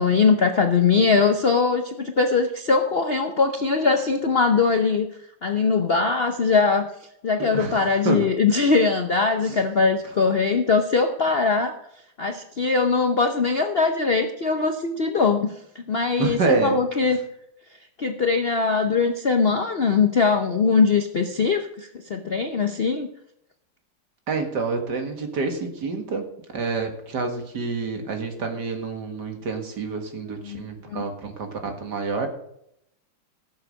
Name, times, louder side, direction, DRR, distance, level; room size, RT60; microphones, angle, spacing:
voice 1, 0.0-5.1 5.4-6.9 7.2-11.7 12.2-17.2 18.0-23.1 30.4-31.0, left 4 dB, 85° left, 5 dB, 0.5 m, -21 dB
voice 2, 7.4-8.3 9.4-9.6 16.2-16.8 24.3-26.3 26.5-32.3, right 4 dB, 55° right, 4 dB, 2.3 m, -28 dB
16.5 x 7.2 x 6.5 m, 0.76 s
omnidirectional pair, 2.3 m